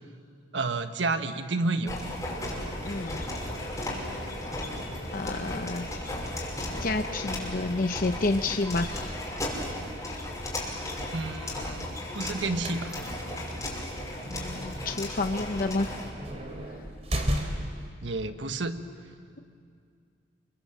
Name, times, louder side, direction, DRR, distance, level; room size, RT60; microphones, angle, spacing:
voice 1, 0.5-2.0 11.1-11.9 12.1-13.0 18.0-18.8, right 3 dB, 75° right, 8 dB, 1.4 m, -30 dB
sound 1, 1.9-16.1, left 1 dB, 20° left, 5.9 m, -35 dB
sound 2, 2.3-7.6, left 1 dB, 75° left, 3.1 m, -45 dB
voice 2, 2.8-3.3 5.1-5.8 6.8-9.1 14.3-16.0, left 2 dB, 50° left, 6 dB, 0.8 m, -29 dB
sound 3, 12.5-17.9, equal, 35° right, 3.2 m, -35 dB
30.0 x 24.0 x 7.7 m, 2.3 s
head